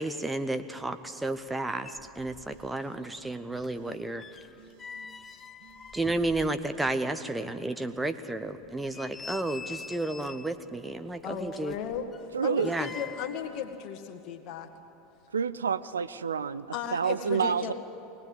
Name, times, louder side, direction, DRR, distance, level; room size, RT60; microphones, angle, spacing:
voice 1, 0.0-4.2 5.9-11.7 12.6-12.9, right 2 dB, 10° right, 9 dB, 0.9 m, -32 dB
sound 1, 1.5-1.6 1.8-2.8 3.0-7.0 7.3-7.4 8.0-8.1 8.6-10.6 11.4-13.4 13.7-13.9, left 5 dB, 25° left, 0.6 m, -46 dB
sound 2, 2.5-3.2 3.5-4.0 4.5-5.1 5.6-6.1 6.7-7.0, right 5 dB, 55° right, 2.0 m, -57 dB
voice 2, 11.2-12.1 12.4-14.7 16.7-17.7, left 8 dB, 45° left, 5 dB, 2.0 m, -35 dB
voice 3, 12.3-12.7 15.3-16.7 16.9-17.7, right 6 dB, 75° right, 15 dB, 0.5 m, -28 dB
21.5 x 18.5 x 9.0 m, 2.9 s
figure-of-eight pair, 80°, 0 cm